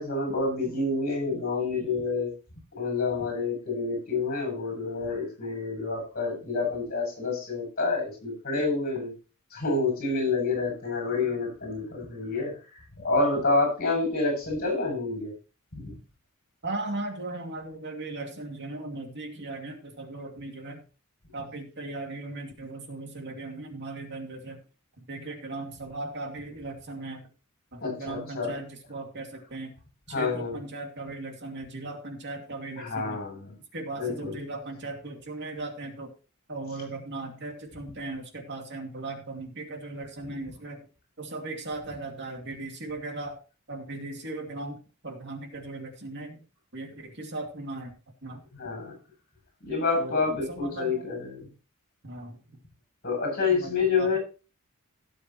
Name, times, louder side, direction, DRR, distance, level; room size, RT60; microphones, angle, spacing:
voice 1, 0.0-2.3 2.8-9.1 9.5-12.5 13.0-15.3 27.8-28.6 30.1-30.6 32.8-33.6 34.0-34.4 48.5-48.9 49.6-51.5 53.0-54.2, left 3 dB, 45° left, 2 dB, 7.7 m, -28 dB
voice 2, 16.6-20.8 21.3-24.6 25.1-27.3 27.7-29.7 30.1-33.2 33.7-36.1 36.5-40.8 41.2-43.4 43.7-44.8 45.0-46.4 46.7-47.9 48.2-48.4 50.0-50.2 50.5-50.9 52.0-52.4 53.4-53.7 54.0-54.2, right 2 dB, 50° right, 3 dB, 2.5 m, -37 dB
17.5 x 7.5 x 3.1 m, 0.34 s
head